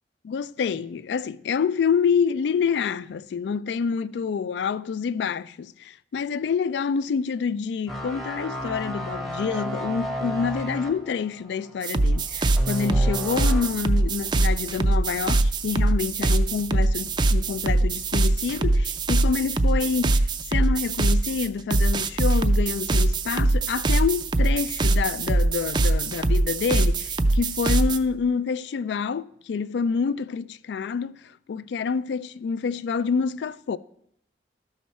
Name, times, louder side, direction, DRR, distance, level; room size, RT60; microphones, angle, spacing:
voice 1, 0.2-31.2 31.5-33.8, left 6 dB, 75° left, 0.3 m, -27 dB
sound 1, 7.9-13.9 14.2-14.5, equal, ahead, 0.8 m, -32 dB
sound 2, 11.8-28.0, right 2 dB, 25° right, 0.3 m, -22 dB
13.0 x 5.8 x 4.2 m
head